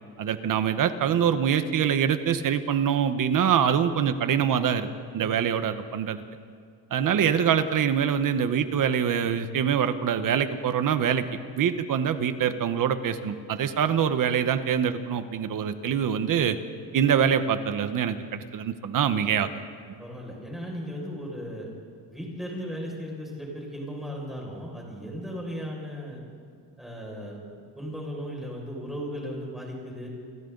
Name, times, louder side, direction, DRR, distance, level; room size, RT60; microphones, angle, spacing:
voice 1, 0.2-4.9 5.1-6.2 6.9-11.2 11.6-16.6 16.9-19.5, right 8 dB, 45° right, 10 dB, 1.3 m, -24 dB
voice 2, 20.0-21.7 22.1-26.2 26.8-27.4 27.7-30.1, equal, ahead, -3 dB, 6.1 m, -36 dB
30.0 x 23.0 x 4.0 m, 2.2 s
cardioid pair, 150°, 44 cm